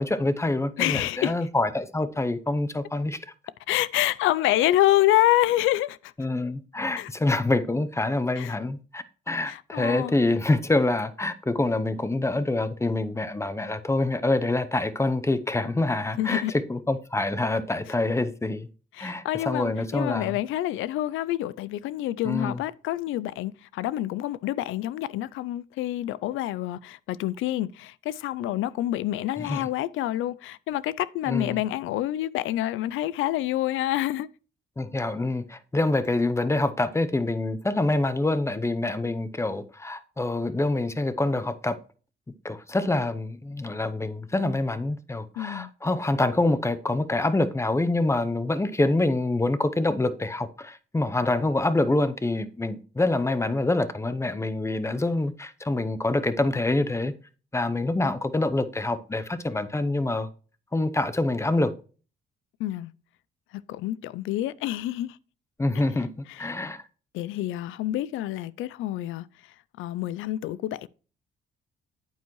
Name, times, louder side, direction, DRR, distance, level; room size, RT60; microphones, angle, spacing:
voice 1, 0.0-3.2 6.2-16.4 16.7-18.7 19.0-20.4 22.2-22.6 29.4-29.7 31.3-31.6 34.8-41.8 42.4-57.1 57.5-60.3 60.7-61.7 65.6-66.8, left 2 dB, 15° left, 0.7 m, -26 dB
voice 2, 0.8-1.3 3.7-6.1 7.0-7.1 8.4-8.6 9.5-10.1 16.2-16.5 18.9-34.3 45.4-45.7 62.6-62.9 63.5-65.2 66.3-66.5 67.1-69.3 69.8-70.9, left 14 dB, 85° left, 0.4 m, -27 dB
9.1 x 8.3 x 3.1 m
cardioid pair, 90°, 20 cm